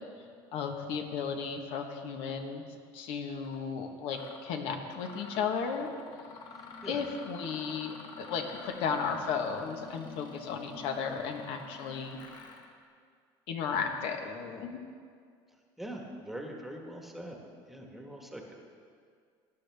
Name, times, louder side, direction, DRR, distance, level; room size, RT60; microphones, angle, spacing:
voice 1, 0.5-2.6 2.9-5.9 6.8-12.2 13.5-14.9, left 6 dB, 65° left, 4 dB, 1.3 m, -34 dB
Mechanisms, 3.4-3.6 4.1-4.5 4.9-12.7, left 4 dB, 45° left, 1.4 m, -49 dB
voice 2, 15.8-17.4 17.7-18.5, right 1 dB, ahead, 1 dB, 1.4 m, -42 dB
18.5 x 9.8 x 3.5 m, 2.1 s
cardioid pair, 135°, 10 cm